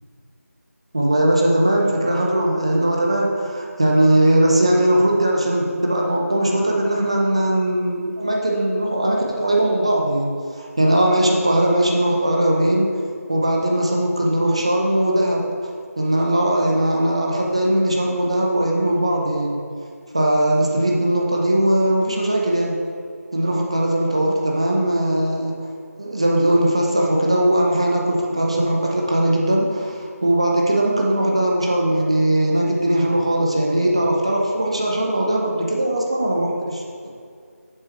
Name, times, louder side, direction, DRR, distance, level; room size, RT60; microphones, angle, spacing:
voice 1, 0.9-12.9 13.3-15.4 16.0-19.6 20.1-22.8 23.3-25.5 26.0-36.8, right 1 dB, 20° right, -1 dB, 0.5 m, -19 dB
7.1 x 5.2 x 4.5 m, 2.2 s
figure-of-eight pair, 170°, 9 cm